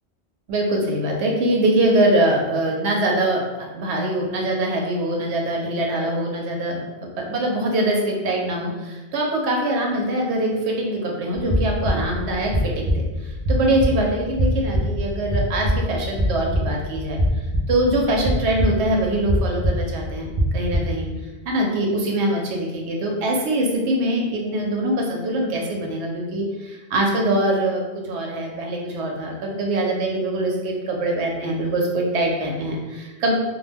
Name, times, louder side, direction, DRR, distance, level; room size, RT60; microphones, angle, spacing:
voice 1, 0.5-17.2 17.7-21.1 21.5-33.3, right 1 dB, 80° right, 0 dB, 0.9 m, -23 dB
sound 1, 11.3-21.1, equal, 45° right, 0.4 m, -24 dB
2.3 x 2.2 x 3.3 m, 1.2 s
omnidirectional pair, 1.1 m